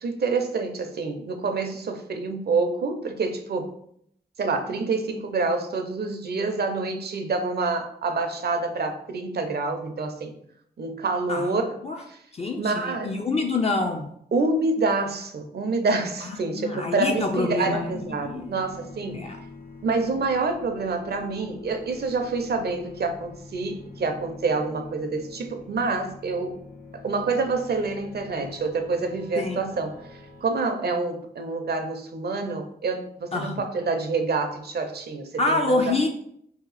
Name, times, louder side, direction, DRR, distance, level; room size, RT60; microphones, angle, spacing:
voice 1, 0.0-3.7 4.4-10.4 10.8-11.8 12.1-12.2 12.6-13.1 14.3-19.2 19.8-26.6 26.9-30.0 30.4-35.9, right 3 dB, 65° right, 6 dB, 0.5 m, -27 dB
voice 2, 12.3-14.1 16.2-18.5 19.1-19.4 29.4-29.6 33.3-33.6 35.4-36.1, left 3 dB, 35° left, 2 dB, 0.4 m, -26 dB
sound 1, 16.9-30.4, left 3 dB, 55° left, 0.8 m, -45 dB
2.8 x 2.4 x 4.0 m, 0.70 s
cardioid pair, 55°, 18 cm